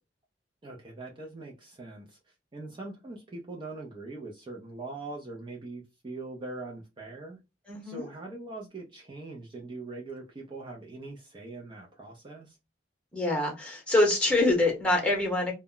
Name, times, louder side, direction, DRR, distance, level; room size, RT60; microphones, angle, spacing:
voice 1, 0.6-7.4 7.8-12.6, right 2 dB, 25° right, -1 dB, 0.4 m, -42 dB
voice 2, 7.7-8.1 13.1-15.5, left 2 dB, 5° left, 0 dB, 0.9 m, -25 dB
2.1 x 2.0 x 3.6 m, 0.25 s
head